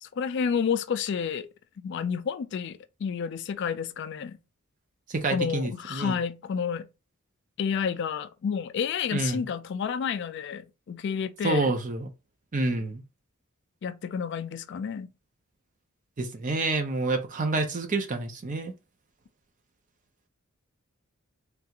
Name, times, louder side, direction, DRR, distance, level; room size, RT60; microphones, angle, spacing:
voice 1, 0.0-1.5 1.8-4.4 5.3-6.9 7.6-11.7 13.8-15.1, left 6 dB, 55° left, 0.3 m, -30 dB
voice 2, 5.1-6.2 9.1-9.5 11.4-12.1 12.5-13.0 16.2-18.7, right 3 dB, 35° right, 0.5 m, -28 dB
3.3 x 2.4 x 2.8 m
head